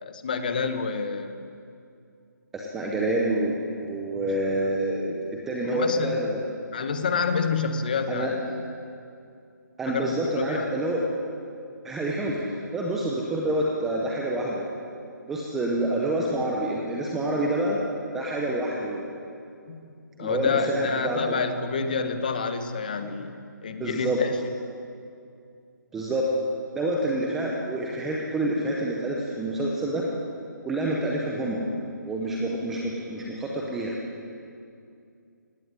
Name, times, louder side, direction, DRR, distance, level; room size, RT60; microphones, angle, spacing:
voice 1, 0.0-1.4 5.6-6.2 6.7-8.4 9.9-10.7 19.7-19.8 20.2-23.4 23.6-24.4, left 5 dB, 25° left, 9 dB, 1.0 m, -28 dB
voice 2, 2.5-5.2 5.5-6.5 8.1-8.3 9.8-11.0 11.8-14.7 15.3-17.8 18.1-19.2 20.2-21.3 23.8-24.2 25.9-26.2 26.8-30.0 30.6-31.6 32.0-33.9, right 1 dB, 5° right, -2 dB, 0.6 m, -27 dB
17.5 x 15.5 x 9.6 m, 2.5 s
hypercardioid pair, 175°, 10 cm